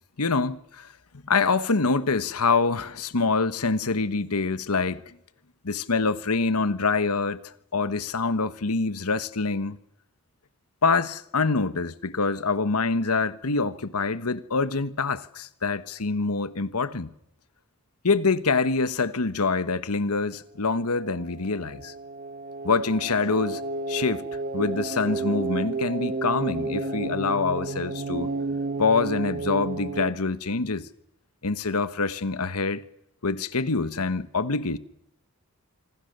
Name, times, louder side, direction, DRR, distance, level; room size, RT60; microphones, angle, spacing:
voice 1, 0.2-0.9 1.2-5.0 5.6-9.8 10.8-17.1 18.0-21.9 22.6-23.6 23.9-24.2 24.5-28.3 28.8-30.9 31.4-32.8 33.2-34.8, left 4 dB, 90° left, 1.2 m, -25 dB
sound 1, 20.7-30.1, right 3 dB, 40° right, 1.6 m, -32 dB
26.5 x 24.5 x 6.7 m
head